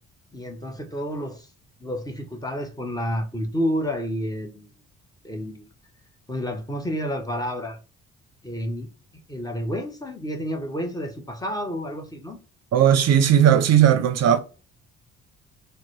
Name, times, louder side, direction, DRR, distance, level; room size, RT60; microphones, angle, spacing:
voice 1, 0.3-1.5 1.8-4.7 5.2-5.6 6.3-7.8 8.4-8.9 9.3-12.4, equal, 10° left, 0.8 m, -30 dB
voice 2, 12.7-14.4, right 9 dB, 60° right, 0.5 m, -17 dB
3.8 x 2.1 x 3.1 m
cardioid pair, 90°, 30 cm